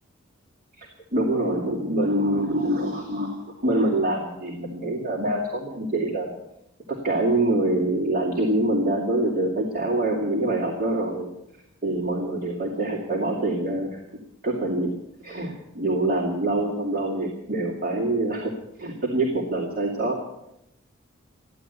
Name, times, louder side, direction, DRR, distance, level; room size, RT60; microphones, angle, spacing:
voice 1, 0.8-6.3 6.9-11.3 11.8-14.0 14.4-14.9 15.2-18.5 18.8-20.2, right 1 dB, 40° right, -3 dB, 2.7 m, -25 dB
15.0 x 11.0 x 8.3 m, 0.85 s
head